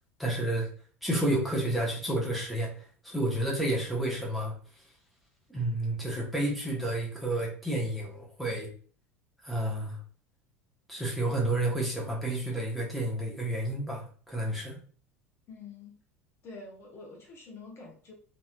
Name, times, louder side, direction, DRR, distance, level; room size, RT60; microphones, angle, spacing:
voice 1, 0.2-0.7 1.0-2.7 3.0-4.5 5.5-8.7 9.4-10.0 10.9-14.8, right 1 dB, ahead, -3 dB, 1.0 m, -30 dB
voice 2, 15.5-16.0 16.4-18.1, left 3 dB, 35° left, -1 dB, 0.9 m, -46 dB
3.0 x 2.7 x 2.3 m, 0.43 s
figure-of-eight pair, 70°, 7 cm